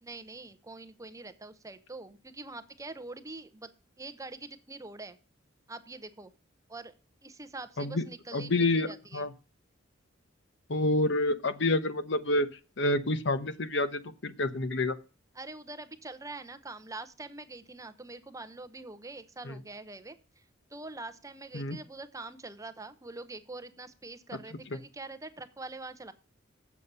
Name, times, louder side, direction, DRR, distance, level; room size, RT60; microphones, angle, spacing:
voice 1, 0.0-3.7 4.0-5.2 5.7-6.3 6.7-6.9 7.2-9.3 15.3-20.4 20.7-26.1, right 2 dB, 15° right, 11 dB, 0.7 m, -44 dB
voice 2, 8.3-9.3 10.7-12.5 12.8-15.0 19.4-19.6 21.5-21.8 24.7-24.8, left 2 dB, 65° left, 12 dB, 0.9 m, -28 dB
8.3 x 7.4 x 5.4 m, 0.33 s
head